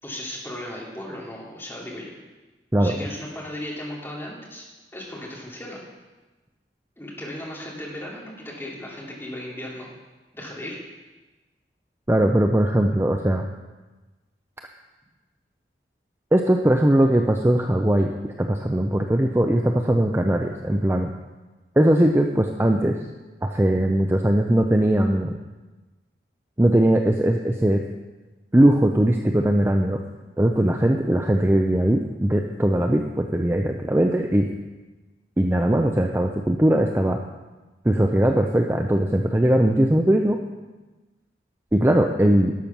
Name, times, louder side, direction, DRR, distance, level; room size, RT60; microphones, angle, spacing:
voice 1, 0.0-2.1 2.8-4.6 4.9-5.8 7.0-9.9 10.3-10.8, left 1 dB, 15° left, -4 dB, 2.5 m, -36 dB
voice 2, 12.1-13.5 16.3-21.1 21.8-22.9 23.4-25.3 26.6-27.8 28.5-30.0 30.4-34.5 35.4-37.2 37.8-40.4 41.7-42.5, right 1 dB, 15° right, 3 dB, 0.5 m, -20 dB
12.0 x 7.0 x 6.0 m, 1.2 s
head